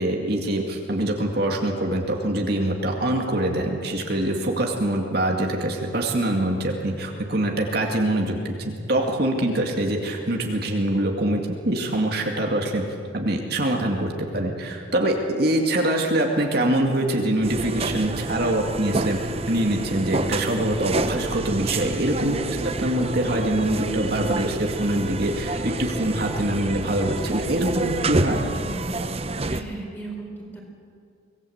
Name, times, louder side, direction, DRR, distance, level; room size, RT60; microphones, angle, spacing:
voice 1, 0.0-12.8 13.1-19.2 19.5-22.6 22.8-28.4, right 1 dB, 50° right, 1 dB, 2.2 m, -24 dB
sound 1, 17.4-29.6, right 2 dB, 30° right, 0.8 m, -28 dB
voice 2, 22.2-22.6 28.3-29.1 29.5-30.6, right 1 dB, 10° left, 0 dB, 4.5 m, -36 dB
25.0 x 19.0 x 8.0 m, 2.3 s
head